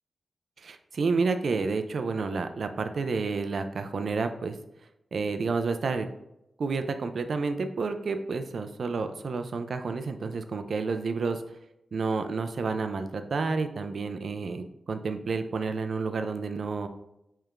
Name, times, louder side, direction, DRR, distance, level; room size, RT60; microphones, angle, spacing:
voice 1, 0.6-4.6 5.1-6.1 6.6-11.4 11.9-16.9, right 4 dB, 60° right, 8 dB, 0.3 m, -30 dB
4.6 x 3.3 x 2.4 m, 0.85 s
wide cardioid pair, 130°, 0 cm